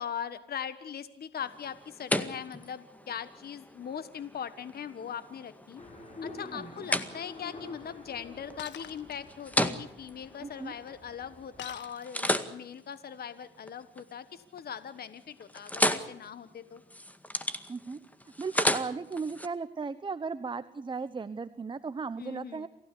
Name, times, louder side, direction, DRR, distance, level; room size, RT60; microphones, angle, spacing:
voice 1, 0.0-5.8 6.2-16.8 22.2-22.7, left 8 dB, 50° left, 13 dB, 1.4 m, -40 dB
sound 1, 1.4-11.4 11.8-14.1 14.5-14.9 15.2-19.5, left 1 dB, 5° left, 1.9 m, -35 dB
sound 2, 5.8-11.8, left 3 dB, 35° left, 7.1 m, -48 dB
voice 2, 6.5-6.9 10.4-10.7 17.7-18.0 18.4-22.7, right 4 dB, 25° right, 13 dB, 1.0 m, -36 dB
Shatter, 8.6-9.2 11.6-12.6, left 9 dB, 65° left, 1.6 m, -45 dB
28.0 x 16.0 x 8.5 m, 0.84 s
cardioid pair, 90°, 20 cm